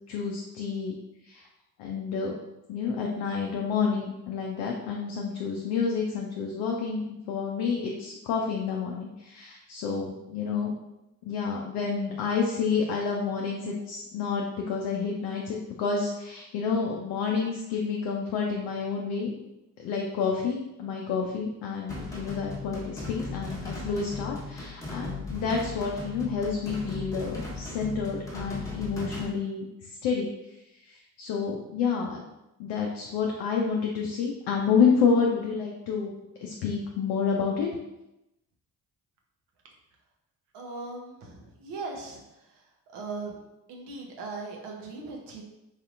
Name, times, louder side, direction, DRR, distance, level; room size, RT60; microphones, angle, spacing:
voice 1, 0.1-0.9 1.2-1.5 1.8-2.3 2.7-10.7 11.2-19.4 19.8-30.6 30.8-32.2 32.6-36.1 36.4-37.7, left 5 dB, 65° left, 0 dB, 0.6 m, -29 dB
sound 1, 21.9-29.3, left 2 dB, 5° left, 1.1 m, -37 dB
voice 2, 40.5-45.4, right 3 dB, 60° right, 0 dB, 0.8 m, -39 dB
3.2 x 2.8 x 2.5 m, 0.93 s
hypercardioid pair, 40°, 45 cm